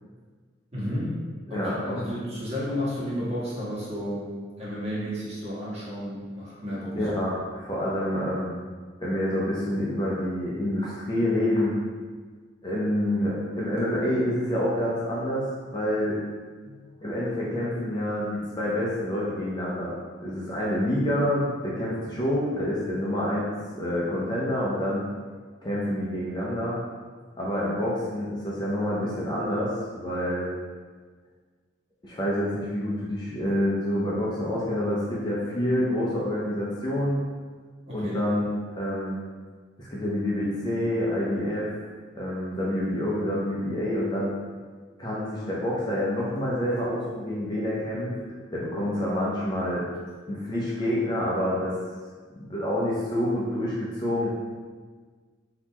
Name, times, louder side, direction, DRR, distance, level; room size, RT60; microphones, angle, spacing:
voice 1, 0.7-7.0 16.6-16.9 37.9-38.2, equal, 35° right, -8 dB, 1.5 m, -32 dB
voice 2, 1.5-2.0 6.9-8.6 9.0-11.7 12.6-15.4 15.7-16.2 17.0-19.9 20.2-25.1 25.6-26.8 27.4-30.5 32.0-37.2 37.9-39.2 39.8-41.8 42.1-44.3 45.0-48.1 48.5-49.8 50.3-51.8 52.4-54.3, left 1 dB, 20° left, -6 dB, 0.7 m, -27 dB
4.0 x 2.9 x 4.3 m, 1.5 s
head